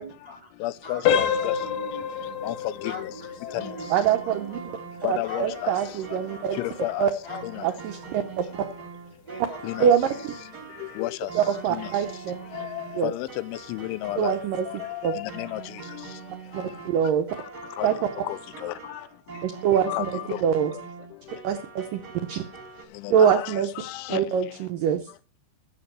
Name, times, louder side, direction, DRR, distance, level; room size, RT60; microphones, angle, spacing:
voice 1, 0.0-2.5 2.8-6.8 7.2-8.9 9.2-10.7 11.4-12.6, left 1 dB, 20° right, 1.1 m, -44 dB
voice 2, 0.6-1.6 2.1-3.1 3.4-3.8 5.0-5.7 6.5-7.1 7.4-7.7 9.6-9.9 10.8-11.3 11.7-12.0 12.5-14.3 14.7-16.1 17.8-18.0 18.2-19.0 19.9-20.4 22.9-24.2, left 16 dB, 85° left, 3.1 m, -32 dB
sound 1, 1.0-11.7 12.1-12.3 12.9-13.0 13.5-13.6, left 8 dB, 65° left, 2.3 m, -32 dB
sound 2, 3.5-22.8, right 5 dB, 50° right, 1.2 m, -43 dB
voice 3, 3.9-4.6 5.1-6.6 7.0-7.1 7.6-8.5 9.8-10.1 11.4-12.3 13.0-13.1 14.2-14.7 15.0-15.1 16.5-17.3 17.8-17.9 19.4-19.9 20.4-20.7 21.4-22.4 23.1-23.7 24.1-25.0, right 8 dB, 85° right, 1.9 m, -24 dB
14.0 x 6.1 x 7.8 m
omnidirectional pair, 5.3 m